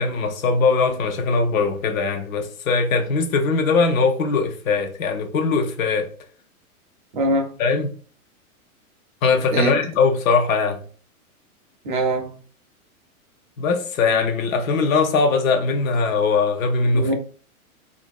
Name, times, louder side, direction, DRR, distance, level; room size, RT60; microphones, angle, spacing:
voice 1, 0.0-6.1 7.6-7.9 9.2-10.8 13.6-17.1, left 4 dB, 65° left, 0.6 m, -21 dB
voice 2, 7.1-7.5 9.5-9.7 11.8-12.3 16.9-17.1, right 1 dB, 35° right, 0.4 m, -22 dB
2.5 x 2.1 x 2.2 m
hypercardioid pair, 150°, 43 cm